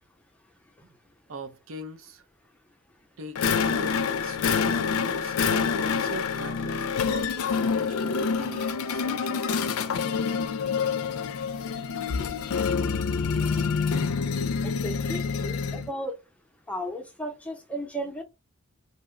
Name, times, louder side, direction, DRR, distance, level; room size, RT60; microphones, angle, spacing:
voice 1, 1.3-2.2 3.2-9.7, right 1 dB, 60° right, 0.5 m, -41 dB
sound 1, 3.4-15.9, left 5 dB, 70° left, 0.4 m, -27 dB
voice 2, 14.6-16.2 16.7-18.2, equal, 5° left, 0.6 m, -35 dB
2.8 x 2.1 x 3.6 m
head